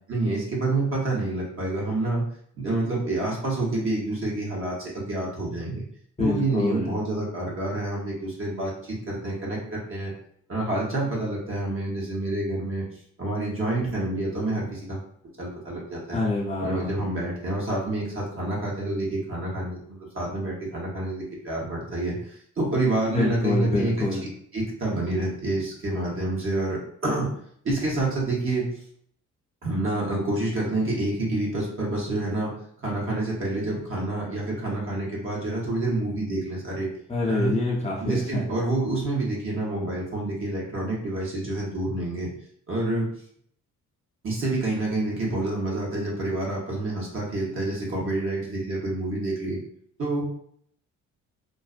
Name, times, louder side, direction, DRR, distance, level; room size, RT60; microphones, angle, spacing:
voice 1, 0.1-2.2 2.5-5.8 6.2-10.1 10.5-12.8 13.2-15.0 15.4-16.2 16.6-24.0 24.5-27.3 27.6-28.7 29.6-32.5 32.8-36.9 37.3-37.6 38.0-42.3 42.7-43.1 44.2-49.6 50.0-50.2, right 2 dB, 45° right, -4 dB, 0.9 m, -28 dB
voice 2, 6.2-6.9 16.1-16.9 23.1-24.3 37.1-38.4, left 2 dB, 20° left, -4 dB, 0.6 m, -26 dB
2.4 x 2.1 x 2.4 m, 0.65 s
cardioid pair, 90°, 30 cm